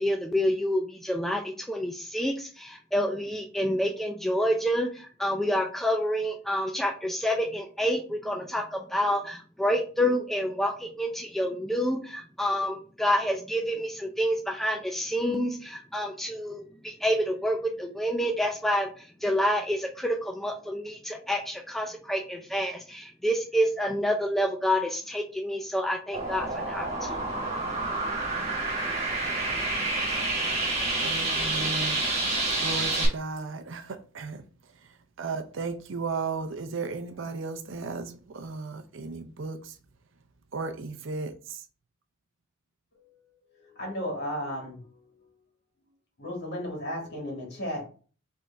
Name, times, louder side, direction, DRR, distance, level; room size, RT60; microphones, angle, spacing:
voice 1, 0.0-27.3, equal, ahead, 0.4 m, -28 dB
sound 1, 26.1-33.1, right 2 dB, 35° right, 1.9 m, -28 dB
voice 2, 31.0-32.0 32.6-34.4 35.2-39.7 40.5-41.6, right 4 dB, 65° right, 0.6 m, -35 dB
voice 3, 43.5-45.3 46.2-47.8, equal, 55° left, 2.2 m, -35 dB
5.2 x 3.5 x 2.6 m
head